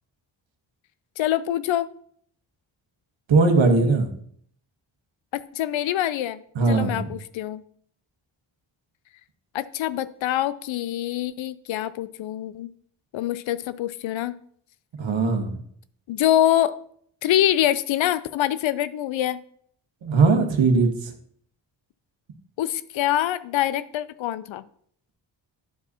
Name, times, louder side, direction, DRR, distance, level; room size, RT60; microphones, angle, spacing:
voice 1, 1.2-1.9 5.3-6.4 6.7-7.6 9.5-12.7 13.1-14.3 16.1-16.8 17.2-19.4 22.6-24.6, left 12 dB, 65° left, 15 dB, 0.5 m, -25 dB
voice 2, 3.3-4.1 6.5-7.1 15.0-15.6 20.0-21.1, right 3 dB, 60° right, 5 dB, 1.4 m, -19 dB
11.0 x 4.7 x 2.8 m, 0.62 s
supercardioid pair, 50°, 50 cm